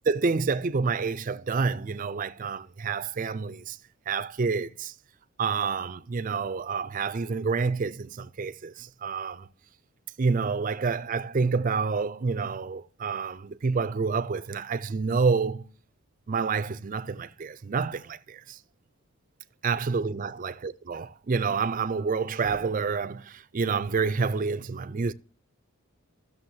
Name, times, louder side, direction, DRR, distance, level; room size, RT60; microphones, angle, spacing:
voice 1, 0.1-3.8 4.1-4.9 5.4-9.5 10.2-15.6 16.3-18.6 19.6-25.1, right 4 dB, 35° right, 0.4 m, -28 dB
15.0 x 6.8 x 2.7 m
head